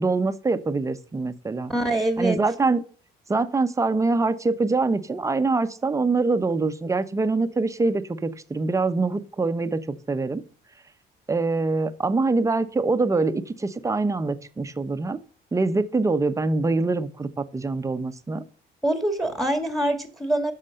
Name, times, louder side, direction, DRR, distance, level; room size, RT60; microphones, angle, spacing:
voice 1, 0.0-1.7 2.2-2.8 3.3-10.4 11.3-15.2 15.5-18.4, right 3 dB, 20° right, 11 dB, 0.9 m, -24 dB
voice 2, 1.7-2.4 18.8-20.5, right 1 dB, ahead, 7 dB, 1.9 m, -24 dB
9.8 x 6.7 x 6.5 m, 0.40 s
cardioid pair, 110°, 17 cm